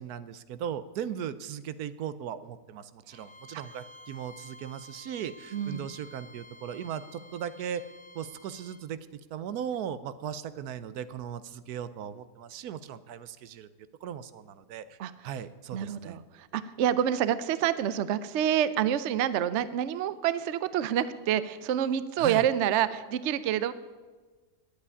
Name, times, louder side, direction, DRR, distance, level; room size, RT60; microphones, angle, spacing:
voice 1, 0.0-7.8 8.1-13.7 14.0-15.0 15.2-16.2 22.2-22.5, right 9 dB, 80° right, 14 dB, 1.2 m, -38 dB
Bowed string instrument, 3.1-8.8, left 1 dB, 35° left, 1.0 m, -51 dB
voice 2, 5.5-5.9 15.0-15.1 15.7-23.7, right 10 dB, 65° right, 15 dB, 0.8 m, -27 dB
11.0 x 8.3 x 9.8 m, 1.3 s
omnidirectional pair, 1.6 m